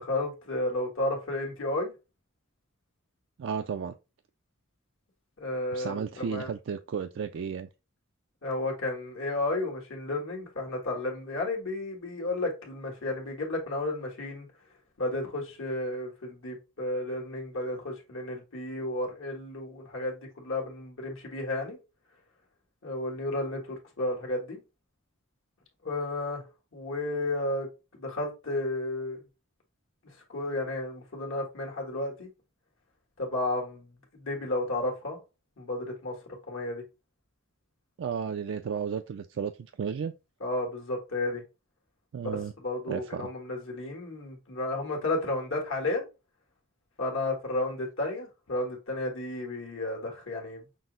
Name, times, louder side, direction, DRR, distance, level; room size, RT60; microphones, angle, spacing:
voice 1, 0.0-1.9 5.4-6.5 8.4-14.5 15.0-21.8 22.8-24.6 25.8-26.4 26.7-27.7 28.0-29.2 30.3-32.3 33.2-35.2 35.6-36.1 36.5-36.8 40.4-41.4 42.2-46.1 47.0-50.6, left 2 dB, 75° left, 1.5 m, -32 dB
voice 2, 3.4-4.0 5.7-7.7 38.0-39.5 39.8-40.1 42.1-42.5 42.9-43.3, right 6 dB, 65° right, 0.3 m, -33 dB
6.0 x 2.0 x 3.7 m
head